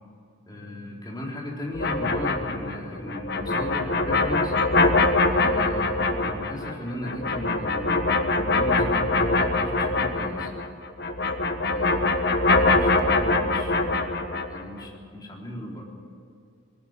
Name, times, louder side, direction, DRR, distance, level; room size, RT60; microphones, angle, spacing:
voice 1, 0.5-4.5 5.3-10.5 11.6-14.2 14.5-15.8, left 1 dB, 20° left, -2 dB, 3.8 m, -36 dB
sound 1, 1.7-10.7 11.0-14.6, left 3 dB, 50° left, 1.4 m, -23 dB
20.5 x 17.5 x 9.1 m, 2.4 s
head